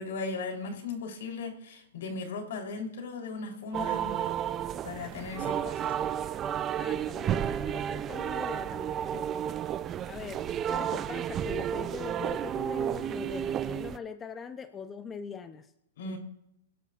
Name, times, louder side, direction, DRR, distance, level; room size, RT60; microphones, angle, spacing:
voice 1, 0.0-4.3 4.8-5.8 16.0-16.2, left 4 dB, 70° left, 3 dB, 3.8 m, -37 dB
sound 1, 3.7-14.0, right 10 dB, 25° right, 0.4 m, -32 dB
voice 2, 6.8-9.7 10.0-15.7 16.0-16.2, left 6 dB, 15° left, 9 dB, 0.7 m, -42 dB
23.5 x 11.0 x 2.5 m, 0.83 s
hypercardioid pair, 140°, 0 cm